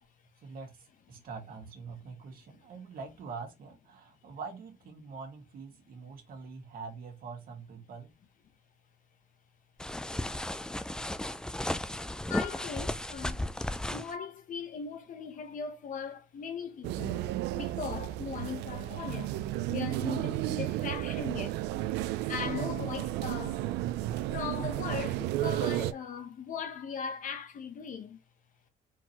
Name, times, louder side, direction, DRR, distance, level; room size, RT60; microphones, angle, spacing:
voice 1, 0.4-8.1, right 5 dB, 60° right, 1.9 m, -44 dB
sound 1, 9.8-14.1, left 1 dB, 5° left, 0.3 m, -34 dB
voice 2, 12.3-13.4 13.7-17.2 17.5-19.3 19.7-21.6 22.3-23.7 24.3-28.2, left 6 dB, 50° left, 1.0 m, -39 dB
sound 2, 16.8-25.9, right 14 dB, 90° right, 0.5 m, -33 dB
4.5 x 3.7 x 2.9 m
cardioid pair, 110°, 17 cm